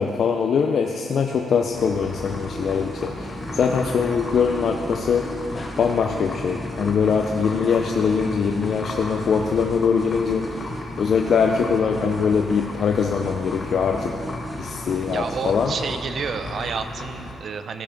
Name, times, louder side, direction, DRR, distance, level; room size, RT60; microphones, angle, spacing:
voice 1, 0.0-5.3 5.8-14.1 14.6-15.7, left 6 dB, 55° left, 2 dB, 0.6 m, -22 dB
sound 1, 1.7-17.3, left 2 dB, 35° left, 1.6 m, -35 dB
sound 2, 2.1-16.0, right 1 dB, 10° right, 0.7 m, -37 dB
voice 2, 15.1-17.8, right 5 dB, 55° right, 9 dB, 0.7 m, -30 dB
15.0 x 5.7 x 5.2 m, 2.3 s
cardioid pair, 90°, 0 cm